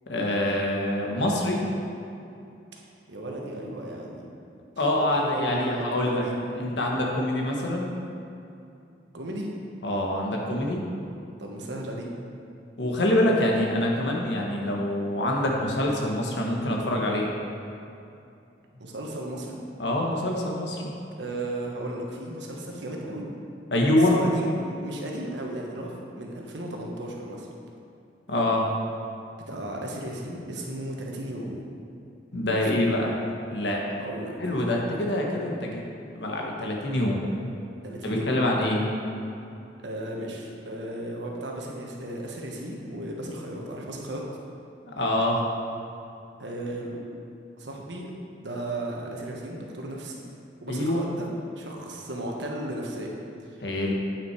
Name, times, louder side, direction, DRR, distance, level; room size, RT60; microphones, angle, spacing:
voice 1, 0.1-1.6 4.8-6.3 6.5-7.9 9.8-10.8 12.8-17.3 19.8-20.9 23.7-24.2 28.3-28.7 32.3-33.1 33.5-33.8 34.4-35.8 36.1-37.2 38.0-38.8 44.8-45.4 50.7-51.0 53.6-53.9, left 1 dB, 70° left, -1 dB, 1.3 m, -25 dB
voice 2, 3.1-4.3 5.0-7.1 9.1-9.5 11.4-12.1 18.8-19.6 21.2-23.3 24.0-27.5 29.5-31.6 32.5-32.7 34.0-34.3 34.6-34.9 37.8-38.3 39.8-44.2 46.4-47.0 47.6-48.1 48.4-50.2 50.6-51.3 51.6-53.1, right 1 dB, 75° right, -1 dB, 1.2 m, -35 dB
8.7 x 5.8 x 4.7 m, 2.6 s
head